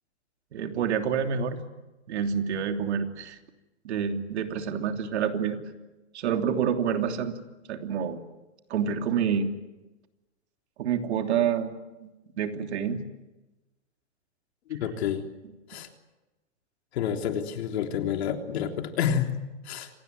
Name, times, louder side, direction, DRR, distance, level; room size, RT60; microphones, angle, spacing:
voice 1, 0.5-1.6 2.1-3.4 3.8-5.6 6.1-7.3 7.7-8.2 8.7-9.5 10.8-11.7 12.0-12.1 12.4-13.0, right 7 dB, 65° right, 5 dB, 3.2 m, -27 dB
voice 2, 14.7-15.3 15.7-15.9 16.9-19.9, left 8 dB, 60° left, 5 dB, 3.5 m, -29 dB
26.5 x 19.5 x 9.5 m, 1.1 s
hypercardioid pair, 150°, 36 cm